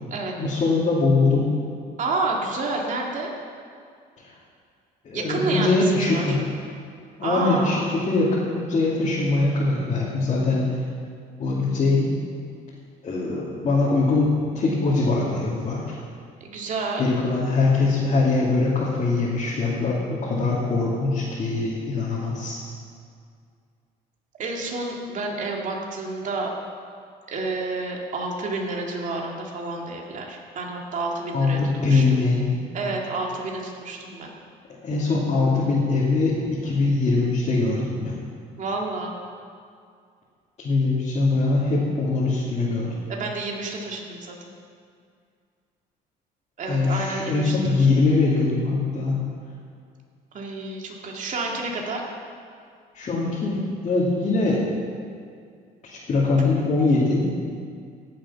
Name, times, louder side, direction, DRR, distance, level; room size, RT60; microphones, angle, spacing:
voice 1, 0.4-1.5 4.2-4.3 5.0-6.4 7.2-10.7 11.4-12.1 13.0-16.0 17.0-22.6 31.3-32.6 34.8-38.2 40.6-42.9 46.7-49.2 52.9-54.7 55.8-57.3, left 3 dB, 40° left, -7 dB, 2.7 m, -22 dB
voice 2, 2.0-3.3 5.1-6.4 7.2-7.9 16.4-17.0 24.4-26.5 27.3-32.2 32.7-34.3 38.6-39.1 43.1-44.3 46.6-47.9 50.3-52.0, right 3 dB, 50° right, -1 dB, 2.3 m, -29 dB
17.0 x 7.5 x 5.7 m, 2.2 s
cardioid pair, 110°, 17 cm